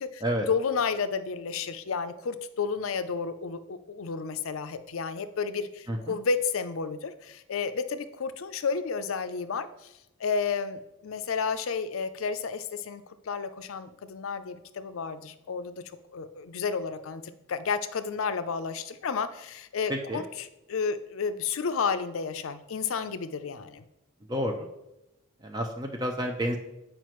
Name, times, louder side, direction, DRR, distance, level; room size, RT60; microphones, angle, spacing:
voice 1, 0.0-9.9 10.2-15.8 16.1-23.8, left 5 dB, 70° left, 11 dB, 0.5 m, -31 dB
voice 2, 5.9-6.2 19.9-20.2 24.3-24.7 25.4-26.6, equal, 20° right, 3 dB, 0.5 m, -30 dB
9.1 x 5.0 x 3.1 m, 0.90 s
head